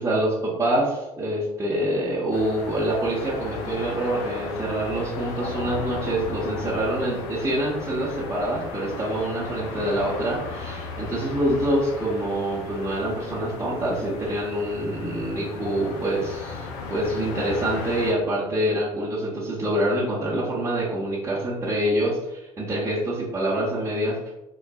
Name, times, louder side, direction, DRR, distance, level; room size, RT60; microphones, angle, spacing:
voice 1, 0.0-24.3, right 1 dB, 15° right, -9 dB, 0.9 m, -26 dB
sound 1, 2.3-18.1, left 4 dB, 60° left, 0.5 m, -35 dB
3.8 x 2.4 x 2.3 m, 0.94 s
figure-of-eight pair, 60°, 18 cm